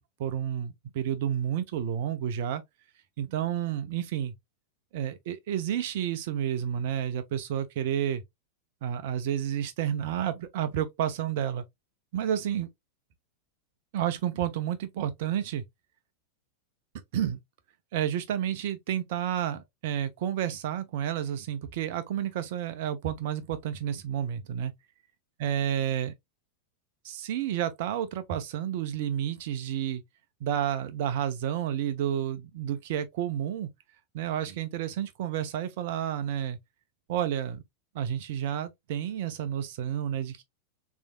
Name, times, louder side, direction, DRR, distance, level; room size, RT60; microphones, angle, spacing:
voice 1, 0.2-2.6 3.2-4.4 4.9-8.2 8.8-11.6 12.1-12.7 13.9-15.6 17.1-17.4 17.9-24.7 25.4-26.1 27.0-30.0 30.4-33.7 34.1-36.6 37.1-37.6 37.9-40.4, right 10 dB, 50° right, 0.7 m, -30 dB
3.6 x 3.3 x 2.3 m
figure-of-eight pair, 90°, 0 cm